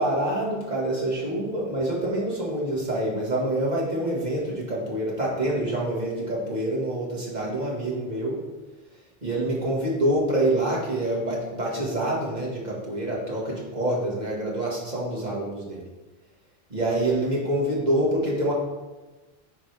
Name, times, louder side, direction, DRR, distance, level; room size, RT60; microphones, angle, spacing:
voice 1, 0.0-8.4 9.2-15.8 16.7-18.5, right 1 dB, 45° right, -4 dB, 1.9 m, -26 dB
9.4 x 5.1 x 3.4 m, 1.2 s
omnidirectional pair, 1.1 m